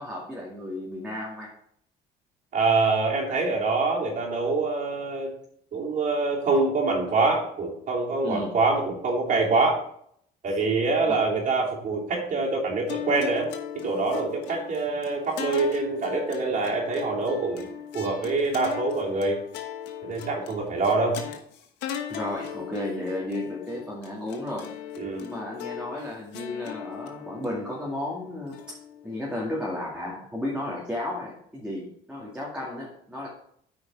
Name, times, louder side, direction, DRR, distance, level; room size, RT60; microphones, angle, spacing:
voice 1, 0.0-1.5 8.2-8.5 11.1-11.2 22.1-24.7 25.2-28.6 29.0-33.3, left 1 dB, 5° right, -5 dB, 2.2 m, -33 dB
voice 2, 2.5-5.3 5.7-9.8 10.4-13.5 13.7-19.4 20.0-21.2 25.0-25.2, right 3 dB, 55° right, -3 dB, 3.2 m, -25 dB
sound 1, 12.9-29.3, left 9 dB, 90° left, 1.2 m, -38 dB
9.1 x 5.1 x 4.6 m, 0.68 s
cardioid pair, 110°, 17 cm